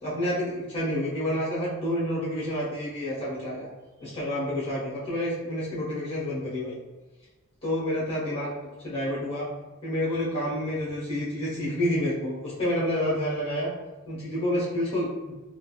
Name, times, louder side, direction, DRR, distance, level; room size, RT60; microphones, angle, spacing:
voice 1, 0.0-3.7 4.0-6.8 7.6-8.5 8.8-9.5 9.8-13.7 14.0-15.3, left 1 dB, 25° left, -8 dB, 1.2 m, -29 dB
3.5 x 2.3 x 2.3 m, 1.2 s
head